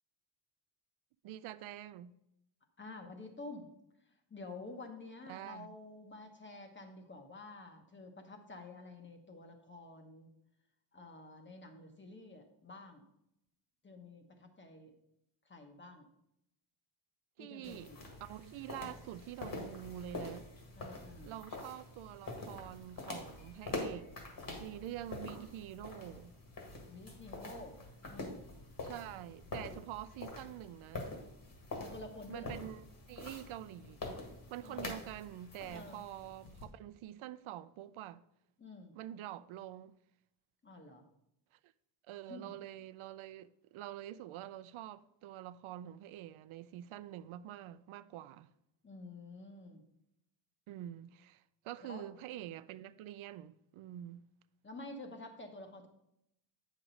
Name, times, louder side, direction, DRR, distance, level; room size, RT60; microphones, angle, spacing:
voice 1, 1.2-2.2 5.3-5.7 17.4-17.9 18.2-20.5 21.2-24.1 24.6-26.3 28.8-31.1 32.3-34.2 34.5-38.2 38.9-39.9 41.5-41.7 42.1-48.5 50.7-54.3, right 12 dB, 80° right, 0.5 m, -46 dB
voice 2, 2.8-3.7 4.3-10.3 10.9-13.1 13.8-14.9 15.4-16.1 17.4-18.1 20.7-21.3 26.9-27.8 28.1-28.5 31.8-32.6 34.6-35.0 35.7-36.0 38.6-38.9 40.6-41.1 42.3-42.5 48.8-49.8 51.8-52.0 54.6-55.9, left 2 dB, 25° left, 1.1 m, -50 dB
sound 1, 17.6-36.6, left 2 dB, 45° left, 1.9 m, -46 dB
8.7 x 6.1 x 4.0 m
cardioid pair, 145°, 48 cm